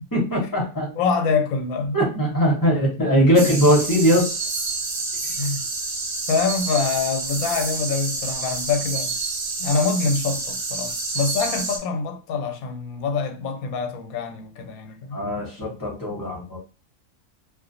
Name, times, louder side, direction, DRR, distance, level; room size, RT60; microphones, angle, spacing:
voice 1, 0.1-0.9 1.9-4.3 15.1-16.6, equal, 20° left, 0.7 m, -20 dB
voice 2, 1.0-2.1 5.4-5.7 6.3-9.1 9.6-15.2, left 5 dB, 85° left, 1.1 m, -25 dB
sound 1, 3.3-11.8, right 3 dB, 60° right, 0.5 m, -28 dB
2.4 x 2.3 x 2.5 m
omnidirectional pair, 1.5 m